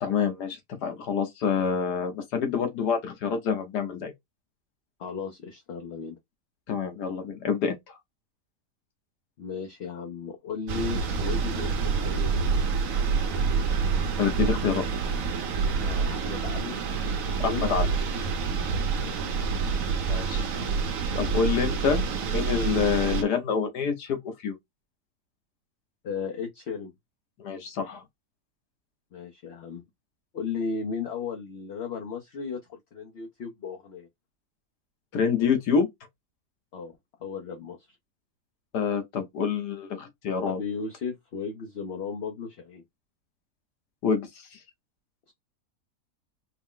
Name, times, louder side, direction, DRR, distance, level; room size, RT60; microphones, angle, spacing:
voice 1, 0.0-4.1 6.7-8.0 14.2-14.9 17.4-17.9 20.1-20.5 21.1-24.5 27.4-28.0 35.1-35.9 38.7-40.6 44.0-44.6, left 6 dB, 85° left, 1.6 m, -27 dB
voice 2, 5.0-6.2 9.4-12.5 15.8-17.7 18.6-18.8 19.1-19.2 26.0-26.9 29.1-29.8 30.3-34.1 36.7-36.9 37.2-37.8 40.4-42.8 45.3-45.4, left 5 dB, 50° left, 0.8 m, -35 dB
sound 1, 10.7-23.2, right 5 dB, 60° right, 1.1 m, -27 dB
4.6 x 2.1 x 3.7 m
omnidirectional pair, 1.7 m